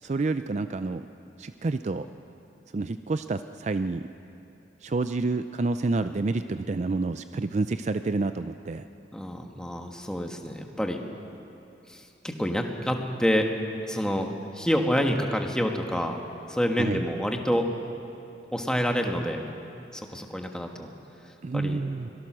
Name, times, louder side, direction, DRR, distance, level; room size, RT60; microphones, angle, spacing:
voice 1, 0.0-1.1 1.4-2.1 2.7-4.0 4.8-8.8 16.8-17.0 21.4-22.1, right 3 dB, 40° right, 10 dB, 0.4 m, -28 dB
voice 2, 9.1-11.0 11.9-13.5 13.9-14.3 14.5-16.2 16.5-17.7 18.5-19.4 19.9-20.9 21.5-21.8, equal, 5° left, 3 dB, 1.3 m, -27 dB
24.0 x 18.5 x 6.2 m, 2.8 s
head